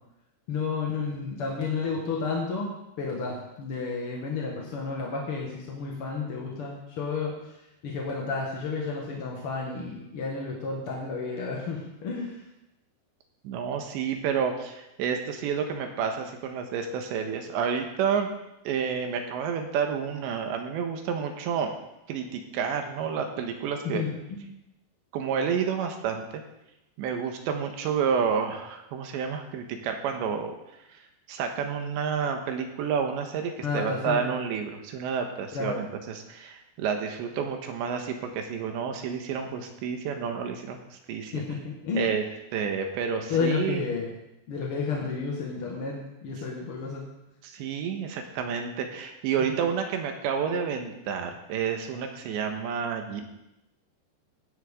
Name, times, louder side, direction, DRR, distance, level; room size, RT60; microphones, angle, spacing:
voice 1, 0.5-7.3 7.8-12.4 23.8-24.4 33.6-34.3 35.5-35.8 41.3-42.0 43.3-44.1 44.5-47.0, left 4 dB, 55° left, -2 dB, 1.5 m, -31 dB
voice 2, 13.5-18.3 18.7-21.7 22.1-24.0 25.1-26.3 27.0-30.5 31.3-41.4 42.0-42.2 42.5-43.8 47.4-53.2, right 7 dB, 85° right, 4 dB, 3.5 m, -30 dB
16.5 x 10.5 x 3.7 m, 0.88 s
omnidirectional pair, 5.0 m